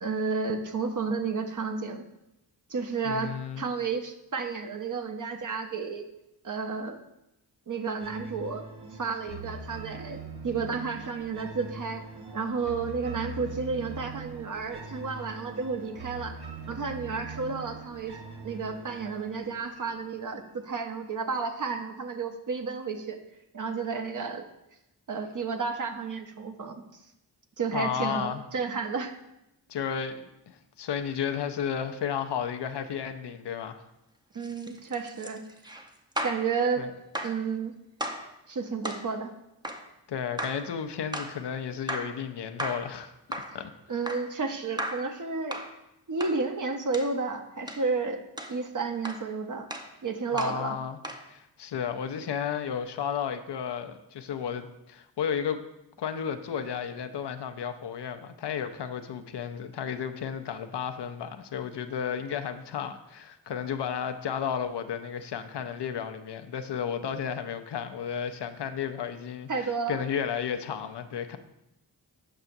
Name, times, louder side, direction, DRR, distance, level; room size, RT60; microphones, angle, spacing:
voice 1, 0.0-2.0 2.7-6.1 6.4-7.0 7.7-8.6 8.9-12.0 12.3-16.3 16.7-18.2 18.4-23.2 23.5-24.5 25.1-26.8 27.6-29.1 34.3-35.4 36.2-36.8 37.2-37.7 38.5-39.3 43.9-45.6 46.1-48.2 48.5-49.7 50.0-50.8 69.5-70.0, right 4 dB, 45° right, 6 dB, 0.7 m, -31 dB
voice 2, 3.0-3.7 27.7-28.4 29.7-33.8 36.8-36.9 40.1-43.7 50.3-51.0 51.3-55.6 56.0-71.4, left 8 dB, 65° left, 8 dB, 0.6 m, -33 dB
sound 1, 8.0-21.0, right 4 dB, 60° right, 1.1 m, -42 dB
sound 2, 34.3-36.5 37.1-37.4 38.0-38.3 38.8-39.1 39.6-39.9 40.4-40.7 41.1-41.4 41.9-42.2 42.6-42.9 43.3-43.6 44.1-44.3 44.8-45.1 45.5-45.7 46.2-46.4 46.9-47.1 47.7-47.9 48.4-48.6 49.0-49.3 49.7-49.9 50.4-50.6 51.0-51.3, equal, 10° right, 0.6 m, -35 dB
6.9 x 5.6 x 2.6 m, 0.88 s
cardioid pair, 45°, 44 cm